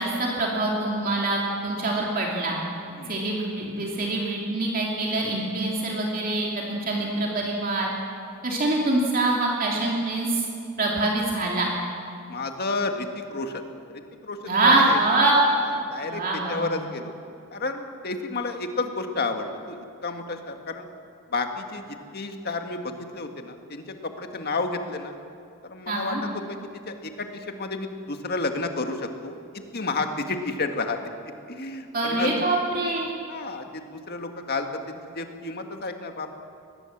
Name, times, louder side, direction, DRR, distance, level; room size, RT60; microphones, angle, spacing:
voice 1, 0.0-2.6 3.1-7.9 8.4-10.4 10.8-11.7 14.4-15.4 16.0-16.7 25.9-26.2 31.9-33.1, right 2 dB, 40° right, -2 dB, 2.8 m, -24 dB
voice 2, 12.3-13.6 13.9-15.0 15.6-17.1 17.5-20.9 21.3-25.1 25.7-26.6 26.9-29.4 29.7-32.4 33.3-36.4, left 3 dB, 45° left, 5 dB, 1.8 m, -31 dB
23.0 x 19.5 x 7.4 m, 2.4 s
head